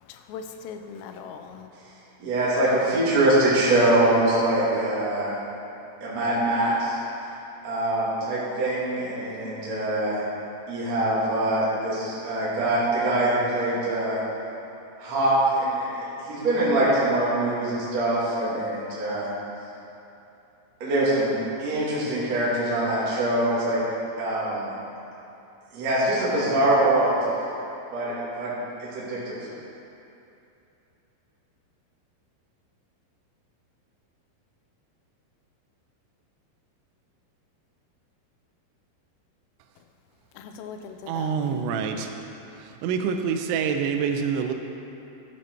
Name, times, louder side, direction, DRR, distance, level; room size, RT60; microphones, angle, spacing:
voice 1, 0.1-1.7 40.4-41.6, left 6 dB, 85° left, 6 dB, 3.2 m, -40 dB
voice 2, 2.2-5.3 6.0-7.0 7.6-10.2 10.7-14.2 15.0-19.3 20.8-23.8 24.2-24.7 25.7-27.2 27.9-28.5 28.8-29.4, right 1 dB, 45° right, -9 dB, 2.4 m, -23 dB
voice 3, 41.1-42.1 42.8-44.5, right 6 dB, 85° right, 4 dB, 2.6 m, -26 dB
13.5 x 6.0 x 4.5 m, 2.8 s
omnidirectional pair, 5.8 m